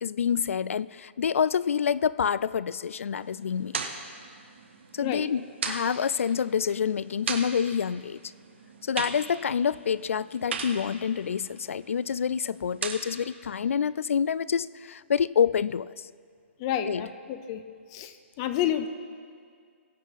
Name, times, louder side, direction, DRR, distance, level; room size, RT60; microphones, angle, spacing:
voice 1, 0.0-3.7 4.9-8.2 8.8-15.9 16.9-17.0, left 7 dB, 80° left, 20 dB, 0.3 m, -27 dB
sound 1, 3.2-13.3, right 5 dB, 60° right, 1.4 m, -39 dB
voice 2, 16.6-17.6 17.9-18.9, left 11 dB, 20° left, 11 dB, 0.5 m, -30 dB
22.0 x 8.3 x 4.1 m, 2.1 s
hypercardioid pair, 170°, 7 cm